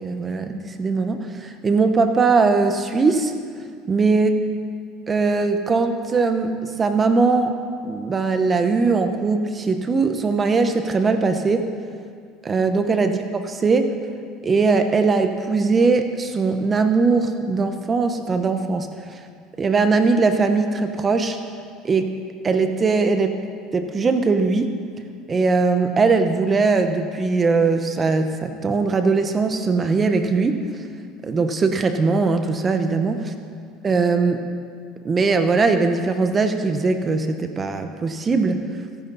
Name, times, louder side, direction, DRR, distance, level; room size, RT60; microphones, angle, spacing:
voice 1, 0.0-3.3 3.9-4.4 5.1-7.5 7.8-11.7 12.4-13.2 13.4-13.9 14.4-19.2 19.6-21.4 21.8-22.1 22.4-23.4 23.7-24.7 25.3-30.6 31.2-33.2 33.8-34.4 35.0-38.6, right 4 dB, 30° right, 7 dB, 1.2 m, -20 dB
24.5 x 11.0 x 4.2 m, 2.1 s
supercardioid pair, 95°, 0 cm